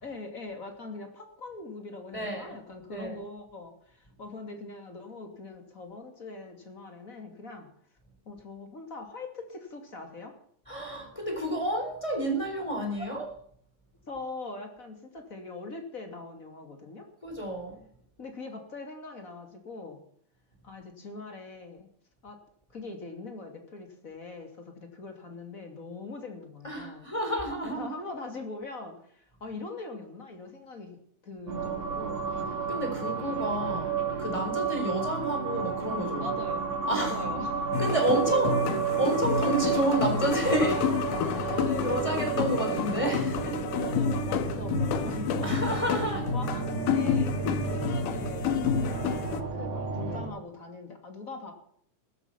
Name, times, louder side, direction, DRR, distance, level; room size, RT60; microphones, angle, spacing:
voice 1, 0.0-7.7 8.3-10.3 13.0-13.1 14.1-17.1 18.2-20.0 20.6-21.9 22.2-22.4 22.7-27.1 27.6-32.3 36.2-36.6 36.9-37.7 38.1-38.8 39.4-39.6 41.5-42.4 43.8-45.8 46.3-47.4 47.7-51.5, left 3 dB, 25° left, 5 dB, 2.6 m, -42 dB
voice 2, 2.1-2.6 2.9-3.2 10.7-13.3 17.2-17.8 26.6-27.9 32.7-36.3 36.8-37.2 37.8-38.6 38.9-40.9 41.3-41.5 41.8-43.6 45.4-46.2, right 1 dB, 10° left, 4 dB, 3.8 m, -30 dB
sound 1, 31.5-50.3, right 5 dB, 65° right, 4.7 m, -32 dB
sound 2, 37.7-49.4, left 7 dB, 80° left, 2.7 m, -30 dB
16.0 x 13.0 x 5.9 m, 0.64 s
omnidirectional pair, 3.7 m